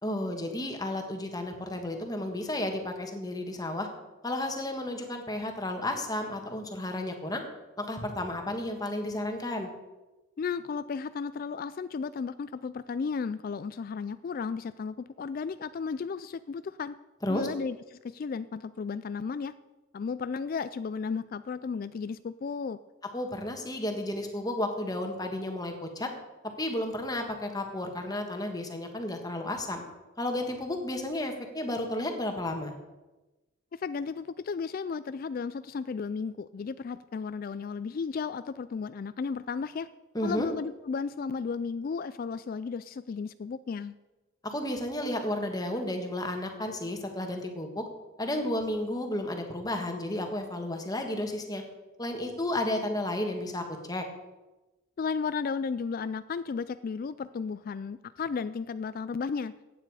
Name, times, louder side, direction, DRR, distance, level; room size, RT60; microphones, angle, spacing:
voice 1, 0.0-3.9 4.2-7.4 7.8-9.7 17.2-17.5 23.1-26.1 26.6-29.8 30.2-32.7 40.1-40.5 44.4-47.8 48.2-51.6 52.0-54.0, left 1 dB, 20° left, 4 dB, 1.5 m, -32 dB
voice 2, 10.4-16.9 17.3-19.5 19.9-22.8 33.7-39.9 40.2-43.9 55.0-59.5, left 5 dB, 45° left, 14 dB, 0.3 m, -34 dB
15.0 x 9.0 x 4.8 m, 1.1 s
head